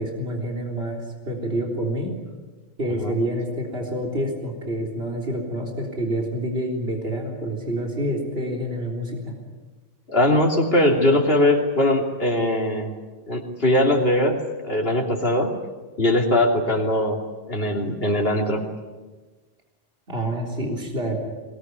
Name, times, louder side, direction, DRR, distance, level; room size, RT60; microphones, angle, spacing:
voice 1, 0.0-2.1 2.8-9.3 20.1-21.2, right 1 dB, 75° right, 0 dB, 4.0 m, -27 dB
voice 2, 10.1-12.9 13.3-14.4 14.6-15.5 16.0-17.2 17.5-18.6, left 1 dB, 70° left, 1 dB, 3.3 m, -20 dB
22.0 x 19.5 x 9.6 m, 1.3 s
omnidirectional pair, 1.0 m